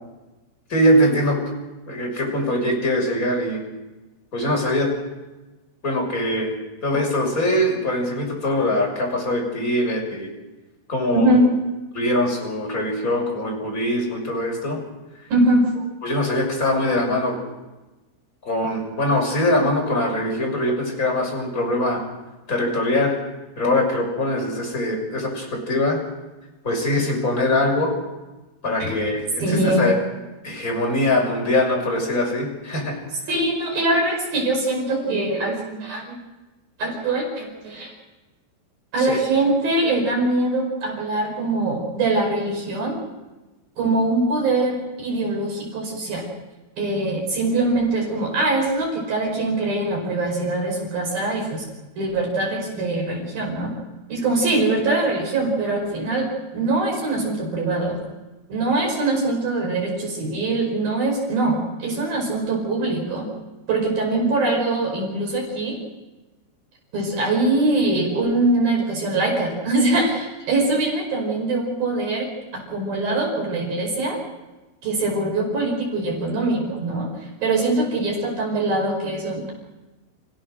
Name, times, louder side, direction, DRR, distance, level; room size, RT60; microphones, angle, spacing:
voice 1, 0.7-1.4 1.9-3.6 4.3-4.9 5.8-6.5 6.8-10.3 10.9-11.3 11.9-14.8 16.0-17.4 18.4-22.0 22.5-23.2 23.6-26.0 26.6-27.9 28.6-30.0 30.4-33.0 39.0-39.2, left 1 dB, 15° left, 0 dB, 5.9 m, -22 dB
voice 2, 11.1-11.5 15.3-15.7 28.8-29.0 29.4-29.9 33.3-36.2 36.8-37.9 38.9-43.0 43.8-46.3 46.8-51.6 52.0-53.7 54.1-58.0 58.5-63.3 63.7-65.8 66.9-74.2 74.8-77.1 77.4-79.5, right 2 dB, 45° right, 0 dB, 6.7 m, -22 dB
29.0 x 16.5 x 6.4 m, 1.1 s
omnidirectional pair, 5.9 m